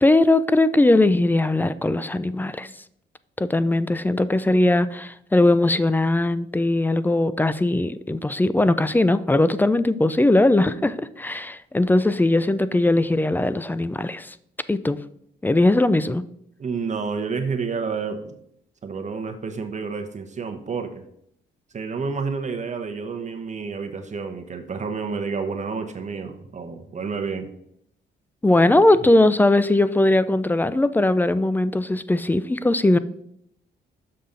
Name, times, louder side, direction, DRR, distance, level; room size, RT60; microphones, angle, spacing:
voice 1, 0.0-2.7 3.4-14.4 14.7-15.0 15.4-16.2 28.4-33.0, left 2 dB, 10° left, 15 dB, 0.4 m, -19 dB
voice 2, 16.6-18.3 18.8-21.0 21.7-27.5, right 5 dB, 35° right, 6 dB, 0.9 m, -29 dB
6.9 x 5.7 x 3.8 m, 0.72 s
cardioid pair, 90°, 20 cm